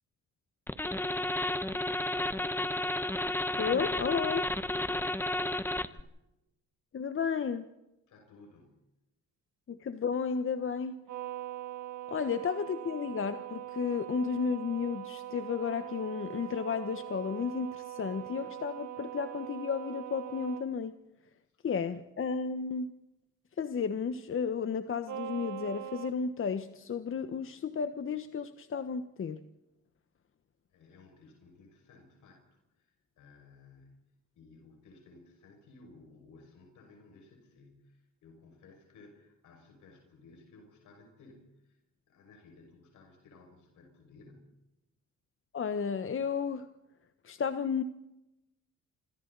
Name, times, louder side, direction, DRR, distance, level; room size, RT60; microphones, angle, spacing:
sound 1, 0.7-6.0, left 1 dB, 5° left, 1.1 m, -32 dB
voice 1, 3.6-4.5 6.9-7.7 9.7-11.0 12.1-21.0 21.6-22.9 23.6-29.4 45.5-46.7 47.2-47.8, left 6 dB, 45° left, 9 dB, 1.3 m, -33 dB
voice 2, 5.2-6.1 8.1-8.8 21.5-21.6 30.7-34.0 34.3-41.8 42.1-44.5, left 3 dB, 80° left, 2 dB, 6.1 m, -57 dB
sound 2, 11.1-20.6 25.1-26.1, right 13 dB, 75° right, 2.7 m, -42 dB
27.5 x 25.5 x 4.1 m, 0.91 s
cardioid pair, 90°, 30 cm